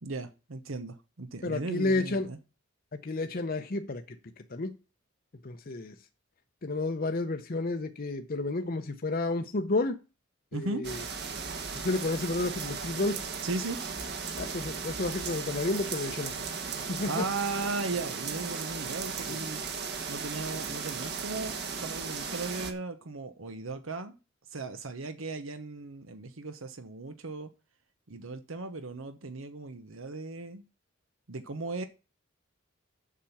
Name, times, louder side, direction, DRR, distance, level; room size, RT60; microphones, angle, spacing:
voice 1, 0.0-2.4 10.5-10.9 13.4-13.8 17.1-19.6 20.1-24.1 24.5-27.5 28.1-30.6 31.3-31.8, right 3 dB, 85° right, 1.0 m, -37 dB
voice 2, 1.4-2.3 3.0-4.0 4.5-4.7 5.4-5.9 6.6-10.0 10.5-11.0 11.8-13.3 14.4-16.4 16.9-17.2 19.3-19.4, left 2 dB, 45° left, 0.7 m, -31 dB
sound 1, 10.8-22.7, right 5 dB, 55° right, 1.4 m, -36 dB
7.4 x 5.9 x 7.1 m
head